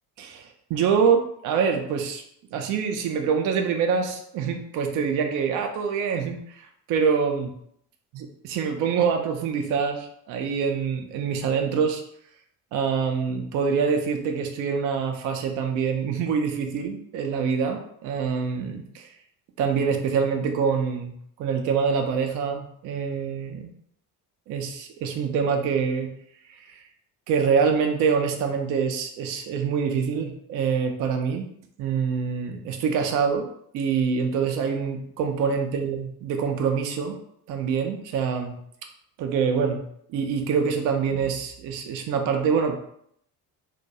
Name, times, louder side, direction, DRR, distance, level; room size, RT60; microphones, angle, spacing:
voice 1, 0.2-2.2 2.5-7.5 8.1-12.0 12.7-19.1 19.6-23.7 24.5-26.1 26.5-26.8 27.3-31.5 31.8-33.5 33.7-37.2 37.5-38.6 39.2-39.8 40.1-42.8, right 6 dB, 40° right, 4 dB, 0.4 m, -25 dB
2.2 x 2.2 x 2.7 m, 0.69 s
figure-of-eight pair, 50°, 50 cm